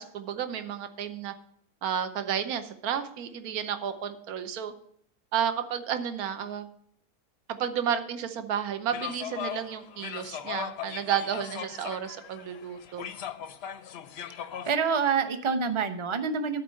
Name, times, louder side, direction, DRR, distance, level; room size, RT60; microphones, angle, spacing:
voice 1, 0.0-1.3 1.8-4.7 5.3-6.7 7.5-13.0, right 8 dB, 75° right, 9 dB, 1.3 m, -32 dB
sound 1, 8.9-14.8, left 9 dB, 60° left, 0.7 m, -38 dB
voice 2, 14.6-16.6, right 5 dB, 30° right, 8 dB, 0.6 m, -27 dB
12.5 x 4.6 x 7.6 m, 0.66 s
omnidirectional pair, 1.6 m